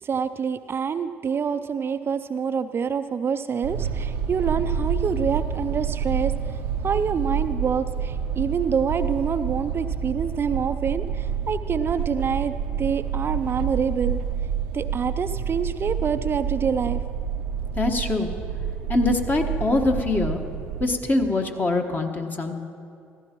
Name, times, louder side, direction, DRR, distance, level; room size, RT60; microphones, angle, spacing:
voice 1, 0.0-6.3 6.8-14.2 14.7-17.0, right 6 dB, 40° right, 10 dB, 0.4 m, -26 dB
sound 1, 3.6-20.9, right 7 dB, 85° right, 0.6 m, -28 dB
voice 2, 17.8-18.3 18.9-20.4 20.8-22.5, left 2 dB, 30° left, 3 dB, 1.3 m, -23 dB
16.0 x 14.5 x 3.0 m, 2.4 s
hypercardioid pair, 60°, 6 cm